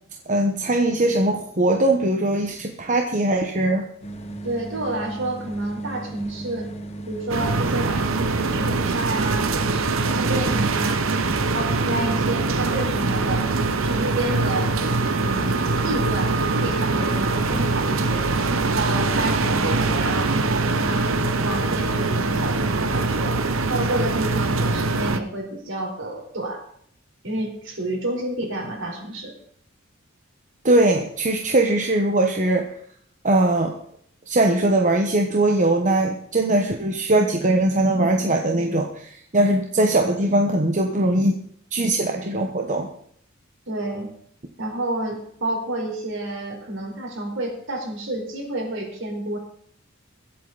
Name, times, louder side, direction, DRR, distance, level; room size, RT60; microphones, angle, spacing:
voice 1, 0.3-3.8 30.6-32.6 33.2-33.7 34.3-41.4 41.7-42.9, right 1 dB, 40° right, 2 dB, 1.2 m, -20 dB
sound 1, 4.0-23.3, right 2 dB, 30° left, 1.5 m, -36 dB
voice 2, 4.4-6.7 7.1-11.0 11.4-13.5 13.8-14.7 15.2-18.3 18.6-23.4 23.7-26.6 27.2-29.3 43.7-44.1 44.6-49.4, right 1 dB, 65° right, 1 dB, 4.4 m, -30 dB
sound 2, 7.3-25.2, right 3 dB, 85° right, 1.0 m, -23 dB
23.0 x 8.4 x 4.1 m, 0.65 s
head